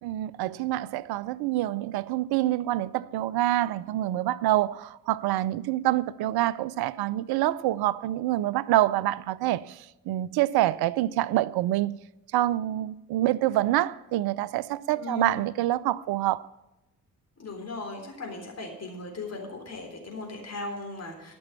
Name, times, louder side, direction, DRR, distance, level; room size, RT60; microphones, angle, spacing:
voice 1, 0.0-12.0 12.3-16.5, right 15 dB, 55° right, 0.6 m, -26 dB
voice 2, 15.0-15.4 17.4-21.3, left 3 dB, 35° left, 3.6 m, -37 dB
13.0 x 6.1 x 8.4 m
hypercardioid pair, 45°, 45 cm